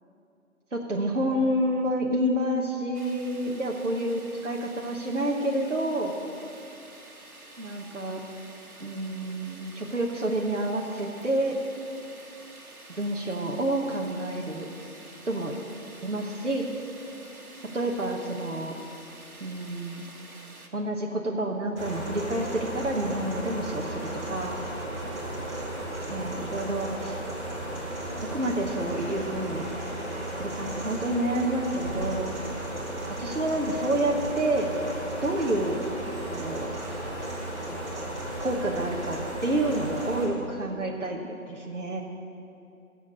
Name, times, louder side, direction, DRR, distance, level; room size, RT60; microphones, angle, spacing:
voice 1, 0.7-6.2 7.6-8.2 8.8-11.6 12.9-14.7 15.3-15.6 16.0-16.7 17.7-18.7 19.4-20.1 20.7-24.6 26.1-27.2 28.2-29.7 30.4-32.3 33.2-34.7 35.2-35.9 36.3-36.7 38.4-41.2 41.5-42.0, right 1 dB, 55° right, -1 dB, 1.1 m, -29 dB
sound 1, 2.9-20.7, right 2 dB, 80° right, 1.7 m, -49 dB
sound 2, 21.7-40.3, right 1 dB, 20° right, 2.9 m, -34 dB
10.5 x 7.3 x 8.6 m, 2.6 s
figure-of-eight pair, 175°, 43 cm